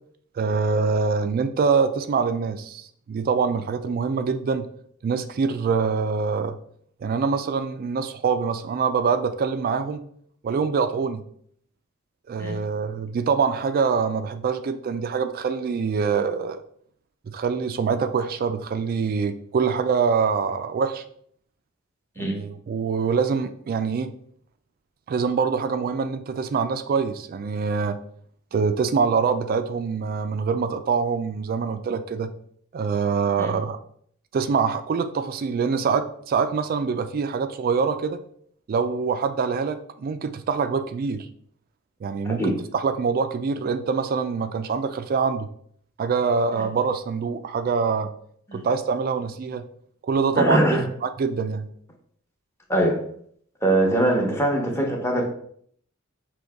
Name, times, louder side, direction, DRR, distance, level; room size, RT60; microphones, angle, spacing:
voice 1, 0.4-4.7 5.0-6.6 7.0-10.0 10.4-11.2 12.3-16.6 17.3-21.0 22.2-24.2 25.1-28.0 28.5-32.3 32.7-33.8 34.3-38.2 38.7-41.3 42.0-45.5 46.0-48.1 48.5-49.6 50.0-51.7, right 5 dB, 45° right, 10 dB, 0.3 m, -24 dB
voice 2, 50.3-50.8 52.7-53.0 53.6-55.2, right 1 dB, 10° left, 0 dB, 0.9 m, -22 dB
5.3 x 2.9 x 3.5 m, 0.64 s
head